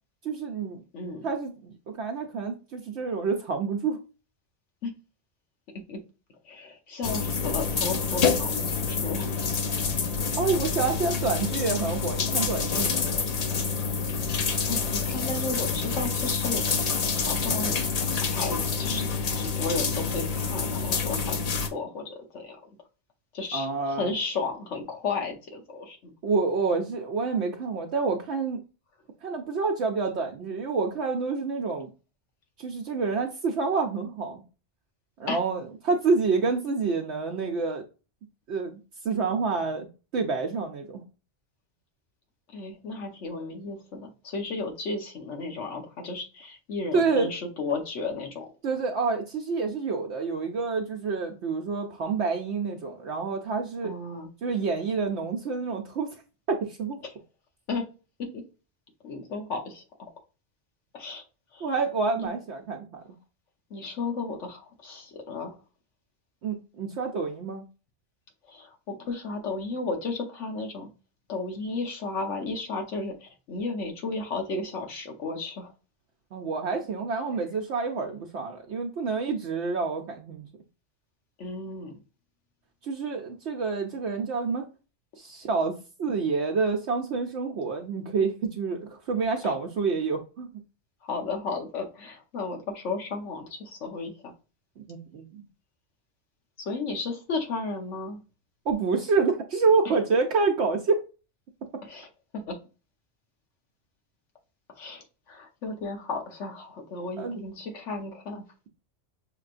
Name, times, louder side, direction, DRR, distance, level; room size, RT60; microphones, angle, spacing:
voice 1, 0.2-0.8 1.2-4.0 10.4-13.1 23.5-24.1 26.2-28.6 29.2-31.9 32.6-34.4 35.2-37.8 38.5-38.8 39.0-39.9 40.1-41.0 46.9-47.3 48.6-53.9 54.4-56.1 56.5-57.0 61.6-63.0 66.4-67.6 76.3-80.5 82.8-84.6 85.2-90.5 94.8-95.4 98.7-101.0 107.2-107.4, right 4 dB, 70° right, 0.9 m, -28 dB
voice 2, 0.9-1.3 4.8-4.9 5.9-6.0 6.4-9.4 14.7-16.9 17.2-17.8 18.3-19.1 19.3-22.6 23.3-26.1 35.3-35.4 42.5-48.5 53.8-54.3 57.0-57.1 57.7-57.9 58.2-58.4 59.0-59.8 60.9-61.2 61.5-61.7 62.2-62.3 63.7-65.6 68.5-70.9 71.3-75.7 81.4-81.9 89.4-89.5 91.0-94.3 96.6-98.2 101.8-102.1 102.3-102.6 104.7-108.5, left 3 dB, 80° left, 1.4 m, -34 dB
sound 1, 7.0-21.7, left 5 dB, 50° left, 0.5 m, -27 dB
6.5 x 3.0 x 2.5 m
omnidirectional pair, 1.2 m